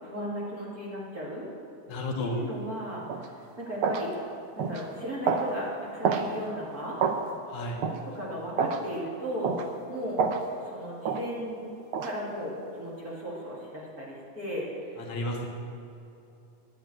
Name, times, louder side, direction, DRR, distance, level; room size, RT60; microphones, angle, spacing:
voice 1, 0.0-1.5 2.2-3.0 3.6-4.1 4.6-7.0 8.1-9.5 9.9-10.2 10.6-11.7 12.0-15.1, equal, 30° right, -5 dB, 2.5 m, -36 dB
voice 2, 1.9-2.4 7.5-7.8 15.0-15.5, left 1 dB, 70° left, 1 dB, 2.5 m, -32 dB
sound 1, 3.1-3.3 3.8-4.1 4.6-4.8 5.3-5.5 6.0-6.3 7.0-7.2 7.8-8.0 8.6-8.8 9.4-9.7 10.2-10.4 11.0-11.2 11.9-12.1, right 6 dB, 80° right, 1.2 m, -27 dB
11.0 x 9.3 x 8.9 m, 2.7 s
omnidirectional pair, 3.6 m